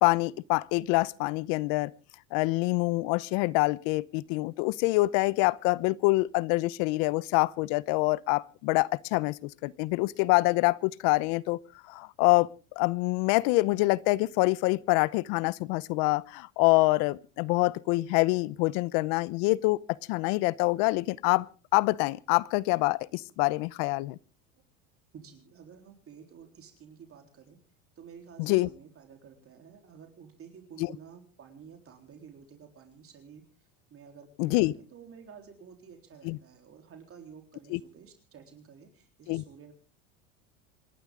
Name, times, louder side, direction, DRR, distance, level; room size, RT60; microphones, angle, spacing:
voice 1, 0.0-1.9 2.3-11.6 11.9-12.5 12.8-19.8 20.1-21.5 21.7-24.2 28.4-28.7 30.8-30.9 34.4-34.7 36.2-36.4 37.7-37.8 39.3-39.4, left 23 dB, 65° left, 0.8 m, -26 dB
voice 2, 25.1-27.6 28.0-39.7, right 7 dB, 35° right, 3.9 m, -51 dB
27.5 x 11.5 x 3.8 m
supercardioid pair, 105°, 38 cm